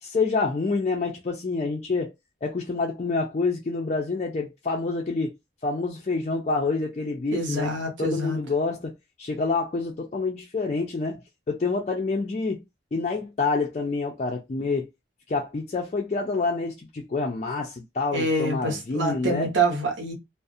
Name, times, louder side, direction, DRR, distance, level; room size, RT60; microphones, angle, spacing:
voice 1, 0.0-2.1 2.4-5.4 5.6-7.7 8.0-8.9 9.2-12.6 12.9-14.9 15.3-19.5, left 3 dB, 35° left, 0.3 m, -27 dB
voice 2, 7.3-8.4 18.1-20.1, right 2 dB, 80° right, 0.8 m, -26 dB
2.3 x 2.0 x 2.5 m
head